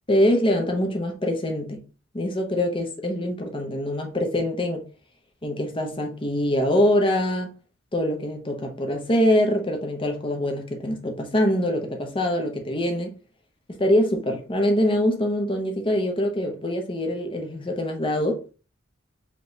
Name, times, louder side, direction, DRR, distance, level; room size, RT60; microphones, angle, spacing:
voice 1, 0.1-1.8 2.1-4.8 5.4-7.5 7.9-13.1 13.7-18.5, left 1 dB, 25° left, 0.9 m, -24 dB
5.1 x 3.1 x 3.2 m
head